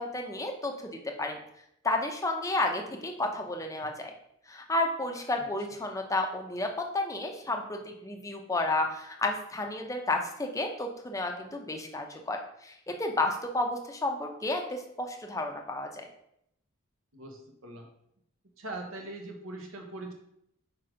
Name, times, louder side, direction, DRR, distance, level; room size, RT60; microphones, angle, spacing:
voice 1, 0.0-1.4 1.8-4.1 4.5-16.1, left 2 dB, 15° left, 3 dB, 0.7 m, -32 dB
voice 2, 17.1-17.9 18.6-20.1, right 2 dB, 75° right, 2 dB, 1.2 m, -41 dB
4.6 x 4.3 x 5.1 m, 0.76 s
head